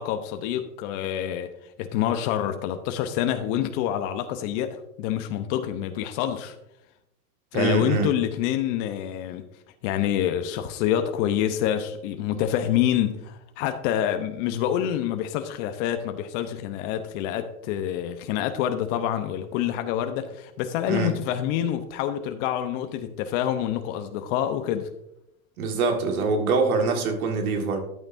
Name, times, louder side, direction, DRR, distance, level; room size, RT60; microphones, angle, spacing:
voice 1, 0.0-6.5 7.5-9.4 9.8-24.9, left 10 dB, 60° left, 7 dB, 0.9 m, -27 dB
voice 2, 7.5-8.1 20.9-21.1 25.6-27.8, right 4 dB, 80° right, 4 dB, 1.9 m, -24 dB
11.0 x 8.8 x 2.6 m, 0.83 s
hypercardioid pair, 110°, 42 cm